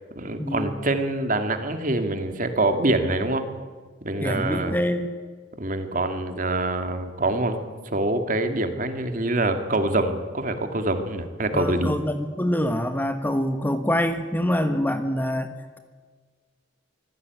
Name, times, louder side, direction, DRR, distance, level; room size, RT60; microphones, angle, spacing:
voice 1, 0.2-3.4 4.0-4.7 5.6-11.9, right 2 dB, 45° right, 7 dB, 2.3 m, -25 dB
voice 2, 4.2-5.1 11.5-15.5, equal, 10° left, 8 dB, 1.2 m, -25 dB
25.0 x 15.5 x 9.5 m, 1.5 s
head